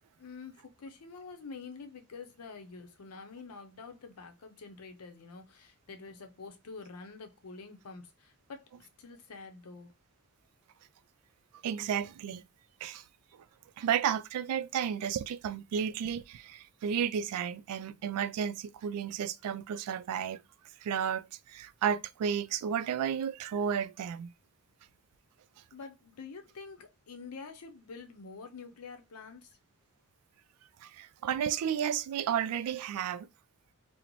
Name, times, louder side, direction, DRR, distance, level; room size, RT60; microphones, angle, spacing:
voice 1, 0.2-9.9 25.7-29.6, left 4 dB, 80° left, 0.6 m, -47 dB
voice 2, 11.6-12.4 12.8-13.0 13.8-20.4 20.8-24.3 30.8-33.3, right 8 dB, 80° right, 0.3 m, -32 dB
3.0 x 2.0 x 3.8 m
head